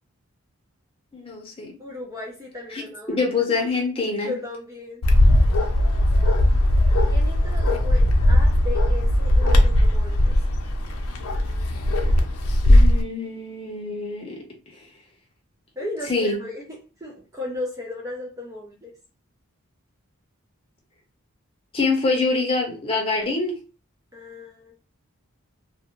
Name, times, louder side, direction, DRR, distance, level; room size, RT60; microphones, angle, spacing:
voice 1, 1.1-1.7 2.7-4.3 12.6-14.4 14.7-14.8 15.8-16.4 21.7-23.5, left 3 dB, 25° left, 0 dB, 0.8 m, -25 dB
voice 2, 1.8-3.3 4.2-5.0 7.1-10.4 11.3-11.7 12.2-12.3 15.8-16.6 17.0-18.9 24.1-24.7, left 2 dB, 15° right, -1 dB, 0.4 m, -36 dB
Bark, 5.0-13.0, left 1 dB, 90° left, 0.5 m, -18 dB
2.5 x 2.2 x 2.9 m, 0.35 s
head